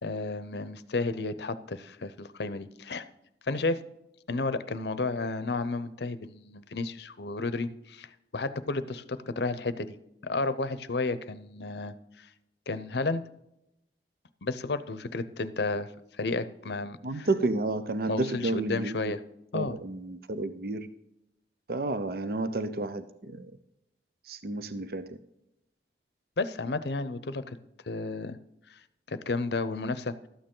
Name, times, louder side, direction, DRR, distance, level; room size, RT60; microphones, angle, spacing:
voice 1, 0.0-3.1 3.5-3.8 4.3-8.1 8.3-10.0 10.2-12.3 12.7-13.2 14.4-15.9 16.2-17.3 18.1-19.2 19.5-19.8 26.4-27.6 27.9-28.4 28.7-28.8 29.1-30.1, left 3 dB, 70° left, 14 dB, 0.7 m, -32 dB
voice 2, 17.0-19.0 19.5-20.9 21.7-23.5 24.3-25.2, right 2 dB, 55° right, 12 dB, 0.6 m, -31 dB
12.5 x 8.9 x 3.8 m, 0.84 s
head